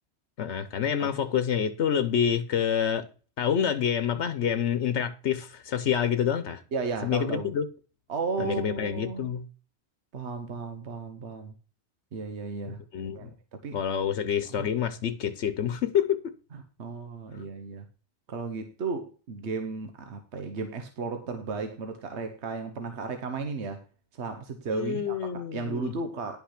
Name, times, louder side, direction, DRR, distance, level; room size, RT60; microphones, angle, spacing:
voice 1, 0.4-3.1 3.4-6.6 7.0-7.6 8.4-9.5 12.7-13.3 13.7-16.3 24.7-25.9, left 8 dB, 80° left, 1.1 m, -27 dB
voice 2, 6.7-7.5 8.1-9.3 10.1-11.5 12.1-12.8 13.1-13.8 14.5-14.7 16.5-17.9 18.3-23.8 24.1-26.4, right 4 dB, 80° right, 1.3 m, -34 dB
11.0 x 5.8 x 5.8 m
omnidirectional pair, 1.1 m